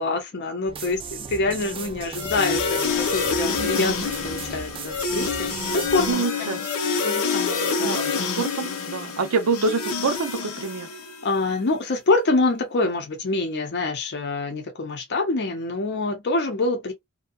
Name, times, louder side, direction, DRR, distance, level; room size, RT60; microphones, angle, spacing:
voice 1, 0.0-5.5 5.7-6.1 6.4-6.5 7.0-8.3 11.2-16.9, left 2 dB, 55° left, 0.7 m, -26 dB
sound 1, 0.7-6.1, right 5 dB, 25° right, 0.3 m, -37 dB
sound 2, 2.2-11.3, left 5 dB, 90° left, 0.7 m, -27 dB
voice 2, 3.6-4.1 6.1-6.6 7.8-8.1 8.4-10.9, right 4 dB, 80° right, 0.5 m, -26 dB
2.6 x 2.2 x 2.3 m
head